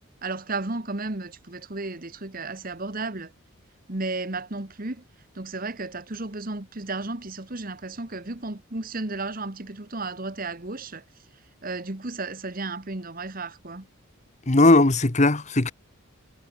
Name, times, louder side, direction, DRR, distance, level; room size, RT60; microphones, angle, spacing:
voice 1, 0.2-3.3 3.9-5.0 5.3-11.0 11.6-13.9, right 3 dB, 40° right, 1.6 m, -33 dB
voice 2, 14.5-15.7, left 2 dB, 30° left, 1.2 m, -18 dB
head